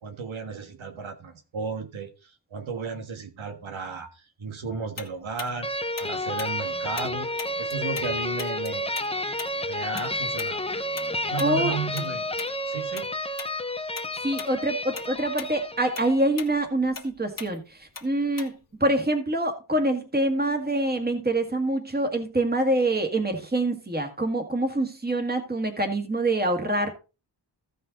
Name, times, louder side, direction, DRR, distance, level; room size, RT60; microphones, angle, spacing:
voice 1, 0.0-5.7 6.0-7.3 7.6-8.9 9.7-10.7 11.2-12.2 12.7-13.1, right 5 dB, 85° right, 5 dB, 1.6 m, -34 dB
Tick-tock, 5.0-8.1 8.4-13.1 13.4-13.6 14.0-14.5 14.8-18.8, left 5 dB, 45° left, 1.4 m, -40 dB
sound 1, 5.6-16.4, left 1 dB, 15° left, 0.6 m, -31 dB
voice 2, 11.4-11.7 14.2-18.5 18.8-26.9, right 1 dB, 20° right, 5 dB, 2.0 m, -25 dB
14.5 x 5.6 x 4.0 m, 0.31 s
wide cardioid pair, 120°, 46 cm